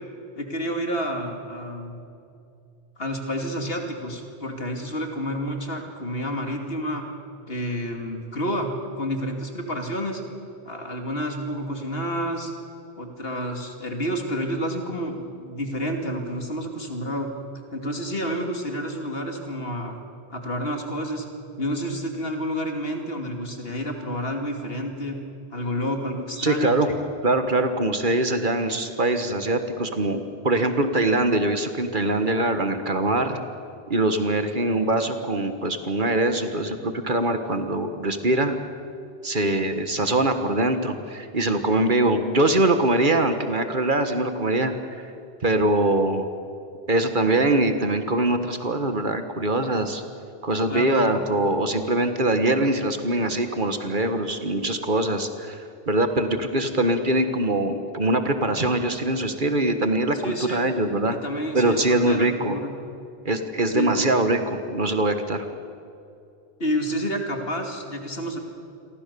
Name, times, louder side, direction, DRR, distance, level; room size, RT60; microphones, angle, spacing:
voice 1, 0.3-2.0 3.0-7.1 7.5-10.2 10.7-12.5 13.0-17.3 17.7-20.0 20.3-21.3 21.6-25.2 25.5-26.8 50.7-51.0 60.2-60.6 61.1-62.7 63.7-64.0 66.6-68.4, equal, 70° left, 3 dB, 2.8 m, -29 dB
voice 2, 26.4-26.9 27.2-33.4 33.9-38.6 39.2-45.1 45.4-46.3 46.9-50.0 50.4-61.2 61.5-62.5 63.3-65.5, right 2 dB, 50° right, 8 dB, 1.7 m, -23 dB
29.0 x 23.0 x 7.0 m, 2.6 s
omnidirectional pair, 1.0 m